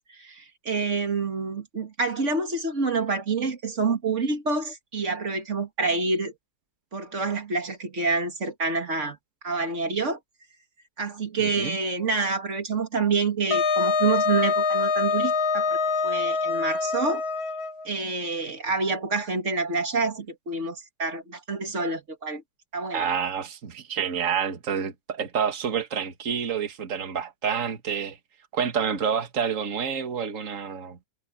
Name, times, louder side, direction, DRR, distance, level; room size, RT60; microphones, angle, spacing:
voice 1, 0.0-6.3 6.9-9.2 9.4-10.2 11.0-17.2 17.8-22.4 22.7-23.1, right 4 dB, 25° right, 1.7 m, -27 dB
voice 2, 11.4-11.8 22.9-28.2 28.5-31.0, right 7 dB, 60° right, 0.8 m, -28 dB
Wind instrument woodwind instrument, 13.5-17.9, left 4 dB, 65° left, 1.2 m, -25 dB
omnidirectional pair, 4.1 m